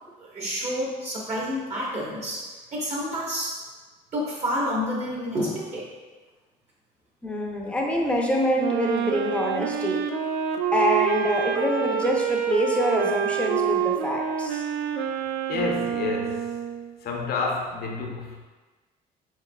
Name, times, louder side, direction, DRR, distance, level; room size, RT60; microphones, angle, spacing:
voice 1, 0.2-3.6 4.1-5.9, equal, 40° right, -5 dB, 1.2 m, -29 dB
voice 2, 7.2-10.1 10.7-14.6, equal, 5° left, 0 dB, 0.6 m, -25 dB
Wind instrument woodwind instrument, 8.5-16.9, right 8 dB, 85° right, 0.4 m, -27 dB
voice 3, 15.5-16.5 17.0-18.4, left 4 dB, 65° left, 0 dB, 0.7 m, -29 dB
4.7 x 4.0 x 2.3 m, 1.3 s
cardioid pair, 110°, 17 cm